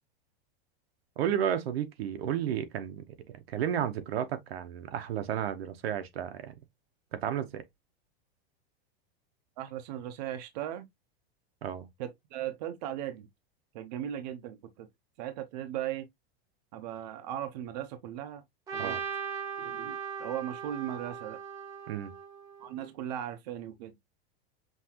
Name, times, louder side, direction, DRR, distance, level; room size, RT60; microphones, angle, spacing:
voice 1, 1.2-3.0 3.5-6.5 7.1-7.6 11.6-11.9 18.8-19.0 21.9-22.1, right 9 dB, 80° right, 1.0 m, -32 dB
voice 2, 9.6-10.8 12.0-13.3 13.7-14.9 15.2-16.1 16.7-18.4 18.7-19.0 19.6-21.4 22.6-24.0, right 11 dB, 45° right, 0.7 m, -37 dB
Trumpet, 18.7-22.8, right 7 dB, 10° right, 0.8 m, -38 dB
5.8 x 2.6 x 2.8 m
supercardioid pair, 175°, 30 cm